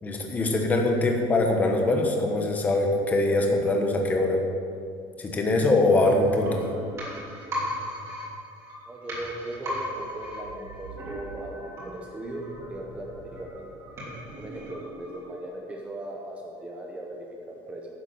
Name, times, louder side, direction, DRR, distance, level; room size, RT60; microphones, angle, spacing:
voice 1, 0.0-4.4 5.2-6.6, left 2 dB, 15° left, 2 dB, 1.2 m, -23 dB
sound 1, 6.0-15.7 16.0-16.1, equal, 30° right, 2.8 m, -38 dB
voice 2, 8.9-13.7 14.3-17.9, right 1 dB, 15° right, 0 dB, 0.9 m, -38 dB
10.5 x 7.2 x 7.4 m, 2.4 s
cardioid pair, 175°, 10 cm